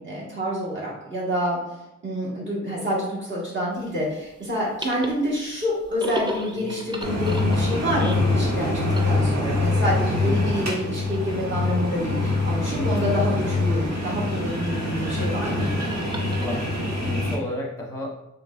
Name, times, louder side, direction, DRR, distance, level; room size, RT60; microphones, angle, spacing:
voice 1, 0.0-1.6 2.0-8.7 9.0-15.7, equal, 40° right, -6 dB, 1.4 m, -27 dB
sound 1, 3.8-17.4, equal, 15° right, 0.4 m, -39 dB
sound 2, 7.0-17.3, left 2 dB, 55° right, 1.3 m, -24 dB
voice 2, 10.1-10.7 12.8-13.1 16.3-16.7 17.0-18.1, equal, 10° left, -2 dB, 0.8 m, -32 dB
5.2 x 3.3 x 2.4 m, 0.93 s
wide cardioid pair, 165°, 30 cm